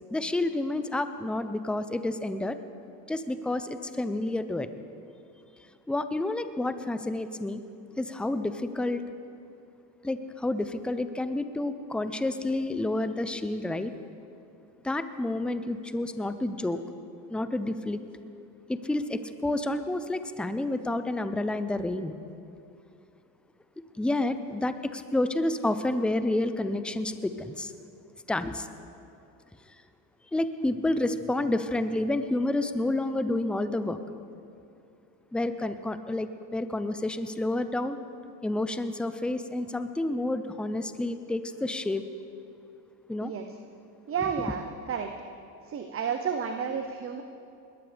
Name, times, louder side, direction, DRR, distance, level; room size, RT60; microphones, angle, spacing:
voice 1, 0.1-2.6 3.1-4.7 5.9-7.6 8.0-9.0 10.0-13.9 14.8-16.8 17.3-18.0 18.7-22.2 24.0-27.7 28.3-28.7 30.3-34.0 35.3-38.0 38.4-42.0 43.1-43.3, left 2 dB, ahead, 11 dB, 0.6 m, -29 dB
voice 2, 44.1-45.1 45.6-47.2, right 7 dB, 30° right, 6 dB, 0.8 m, -31 dB
20.0 x 14.5 x 3.5 m, 2.6 s
hypercardioid pair, 85°, 48 cm